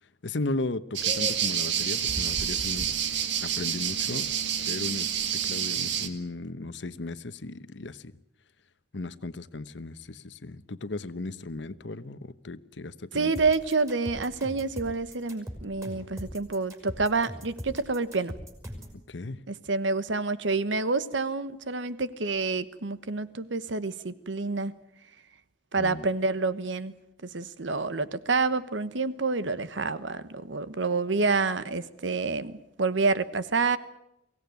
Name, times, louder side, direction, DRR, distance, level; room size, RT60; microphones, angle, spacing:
voice 1, 0.2-2.9 3.4-4.3 4.7-5.1 5.4-8.1 8.9-13.3 19.1-19.4 25.8-26.0, left 2 dB, 75° left, 14 dB, 1.0 m, -36 dB
sound 1, 1.0-6.1, right 8 dB, 70° right, 1.9 m, -28 dB
voice 2, 13.1-18.3 19.5-24.7 25.7-26.9 27.2-33.8, right 3 dB, 90° right, 15 dB, 1.2 m, -28 dB
sound 2, 13.3-19.0, equal, 15° right, 5.3 m, -40 dB
23.5 x 17.0 x 9.4 m, 0.86 s
head